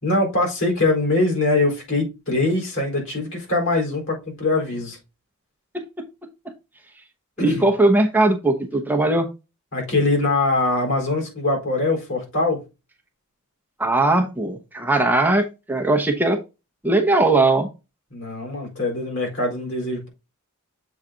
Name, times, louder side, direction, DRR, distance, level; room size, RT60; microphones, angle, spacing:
voice 1, 0.0-5.0 7.4-7.6 9.7-12.6 18.1-20.1, left 2 dB, 65° left, 4.4 m, -22 dB
voice 2, 7.4-9.3 13.8-16.4 16.8-17.7, right 2 dB, 10° right, 0.8 m, -19 dB
7.4 x 4.0 x 3.8 m
head